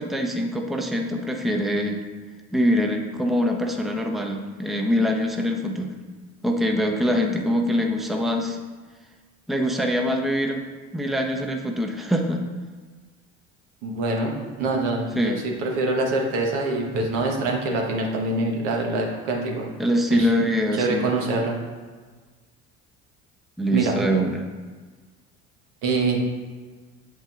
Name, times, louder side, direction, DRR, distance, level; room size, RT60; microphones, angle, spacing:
voice 1, 0.0-2.0 2.5-5.9 6.4-8.6 9.5-10.6 10.9-12.4 15.2-15.4 19.8-21.1 23.6-24.5, equal, ahead, 2 dB, 0.6 m, -24 dB
voice 2, 13.8-19.7 20.1-20.3 20.7-21.6 23.7-23.9 25.8-26.2, right 2 dB, 80° right, 0 dB, 1.2 m, -25 dB
7.4 x 5.4 x 2.4 m, 1.4 s
hypercardioid pair, 70°, 35 cm